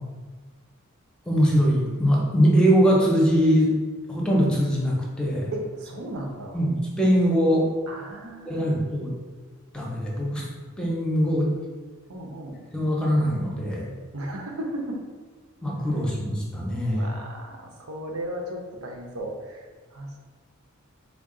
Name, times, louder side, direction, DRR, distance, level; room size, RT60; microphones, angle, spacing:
voice 1, 1.3-3.7 4.1-5.5 6.5-7.7 8.5-9.1 9.7-10.5 10.8-11.5 12.7-13.9 15.6-17.1, equal, 5° left, -4 dB, 0.6 m, -22 dB
voice 2, 5.5-6.6 7.9-8.8 12.1-12.6 14.1-15.0 16.9-20.2, right 1 dB, 85° right, 1 dB, 0.7 m, -35 dB
3.6 x 2.2 x 3.7 m, 1.4 s
head